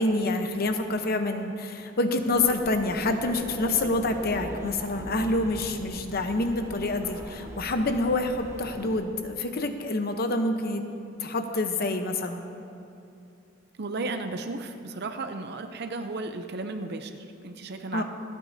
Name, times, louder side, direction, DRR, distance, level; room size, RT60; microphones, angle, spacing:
voice 1, 0.0-10.8 11.2-12.4 17.9-18.0, left 2 dB, 50° left, 6 dB, 0.8 m, -27 dB
sound 1, 2.3-9.0, right 1 dB, 15° right, 0.8 m, -41 dB
voice 2, 13.8-18.0, right 3 dB, 55° right, 7 dB, 0.6 m, -34 dB
26.5 x 9.2 x 2.7 m, 2.7 s
head